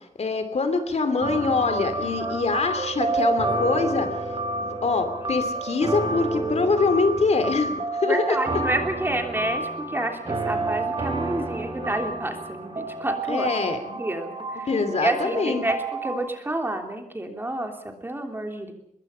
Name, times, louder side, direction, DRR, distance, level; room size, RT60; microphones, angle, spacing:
voice 1, 0.2-4.1 4.6-8.4 13.3-14.0 14.7-15.7, left 4 dB, 55° left, 8 dB, 2.8 m, -24 dB
sound 1, 1.2-16.1, right 2 dB, 40° right, 3.8 m, -29 dB
voice 2, 2.0-2.4 8.1-13.5 14.0-14.7 15.0-18.7, right 1 dB, 15° right, 4 dB, 3.2 m, -29 dB
24.5 x 22.0 x 5.7 m, 0.74 s
wide cardioid pair, 175°, 13 cm